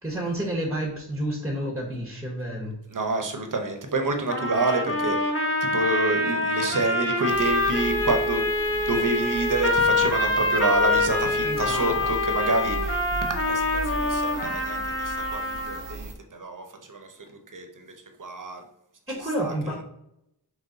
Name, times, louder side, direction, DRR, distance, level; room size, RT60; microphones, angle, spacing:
voice 1, 0.0-2.8 11.4-12.1 19.1-19.8, right 1 dB, 5° right, 0 dB, 1.0 m, -30 dB
voice 2, 2.9-18.6 19.1-19.7, right 2 dB, 45° right, 5 dB, 0.8 m, -28 dB
sound 1, 4.3-16.0, left 2 dB, 30° left, 0.9 m, -25 dB
sound 2, 7.3-16.2, right 3 dB, 85° right, 0.7 m, -38 dB
3.9 x 3.1 x 3.9 m, 0.81 s
wide cardioid pair, 55°, 42 cm